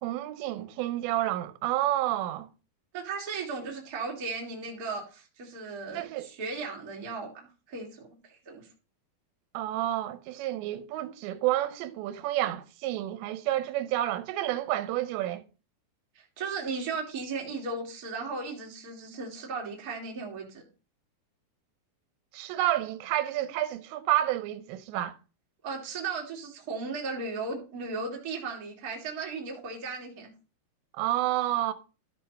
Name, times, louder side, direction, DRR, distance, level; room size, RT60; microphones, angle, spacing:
voice 1, 0.0-2.5 5.9-6.3 9.5-15.4 22.3-25.1 31.0-31.7, right 14 dB, 80° right, 3.0 m, -29 dB
voice 2, 2.9-8.7 16.1-20.6 25.6-30.3, right 4 dB, 30° right, 2.1 m, -36 dB
12.5 x 4.6 x 5.3 m
omnidirectional pair, 5.2 m